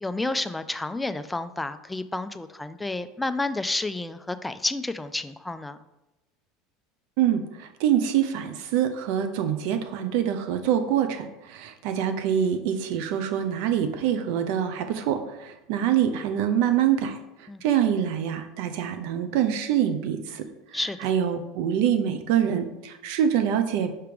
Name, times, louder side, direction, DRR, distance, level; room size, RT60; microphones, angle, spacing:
voice 1, 0.0-5.8 17.5-17.6 20.7-21.1, left 2 dB, 10° left, 11 dB, 0.4 m, -30 dB
voice 2, 7.2-20.5 20.7-23.9, right 9 dB, 70° right, 8 dB, 0.6 m, -25 dB
5.8 x 3.3 x 5.1 m, 0.96 s
supercardioid pair, 105°, 0 cm